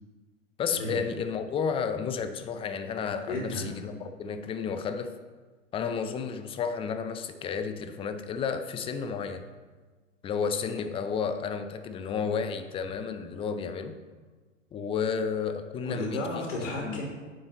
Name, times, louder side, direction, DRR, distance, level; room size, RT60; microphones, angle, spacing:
voice 1, 0.6-5.1 5.7-9.4 10.2-14.0 14.7-16.2 16.8-17.0, left 6 dB, 15° left, 9 dB, 0.5 m, -32 dB
voice 2, 3.3-3.7 15.8-17.0, left 1 dB, 65° left, -1 dB, 3.1 m, -33 dB
11.0 x 8.7 x 3.0 m, 1.4 s
hypercardioid pair, 105°, 38 cm